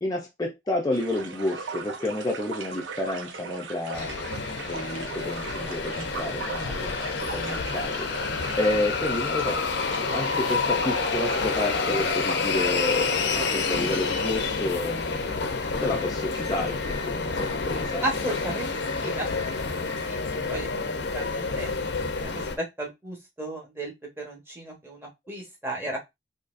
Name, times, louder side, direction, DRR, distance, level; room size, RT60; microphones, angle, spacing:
voice 1, 0.0-4.1 4.7-18.4, left 2 dB, 20° left, -1 dB, 0.5 m, -30 dB
sound 1, 0.9-14.5, right 4 dB, 75° right, 0.6 m, -39 dB
sound 2, 3.9-22.6, left 4 dB, 60° left, 0.6 m, -28 dB
voice 2, 18.0-18.7 18.9-19.3 19.6-19.8 20.0-20.2 20.5-20.7 21.1-21.7 22.2-22.3 22.6-26.0, right 1 dB, 10° right, 0 dB, 1.0 m, -34 dB
4.0 x 2.8 x 2.5 m, 0.20 s
head